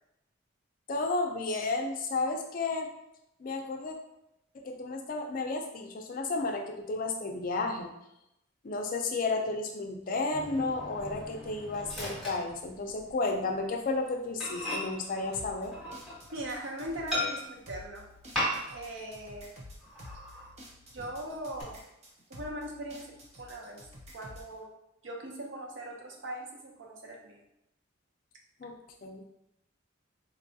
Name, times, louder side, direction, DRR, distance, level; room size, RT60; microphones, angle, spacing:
voice 1, 0.9-2.9 3.4-4.0 4.5-7.9 8.6-15.7 28.6-28.7 29.0-29.2, left 3 dB, 45° left, 3 dB, 0.4 m, -32 dB
Microwave oven, 10.3-13.2 13.5-13.7 14.1-14.2 14.4-16.5 17.1-17.7 18.3-18.9 19.2-19.3 19.8-20.5 21.0-21.6, left 1 dB, ahead, 1.1 m, -37 dB
sound 1, 15.3-24.5, left 1 dB, 35° right, 0.6 m, -50 dB
voice 2, 16.3-18.0 18.7-19.5 20.9-21.8 22.3-23.1 23.4-23.8 24.1-24.7 25.0-27.4, right 1 dB, 75° right, 0 dB, 0.7 m, -40 dB
4.0 x 2.2 x 2.7 m, 0.85 s
head